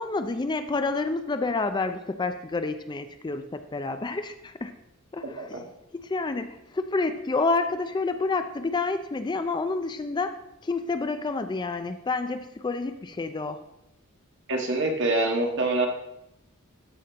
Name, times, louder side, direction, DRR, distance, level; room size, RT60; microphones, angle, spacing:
voice 1, 0.0-4.7 5.1-5.6 6.0-10.3 10.6-13.6, left 3 dB, 20° left, 9 dB, 0.4 m, -29 dB
voice 2, 14.5-15.9, right 2 dB, 55° right, 2 dB, 1.6 m, -25 dB
12.5 x 4.3 x 5.1 m, 0.87 s
head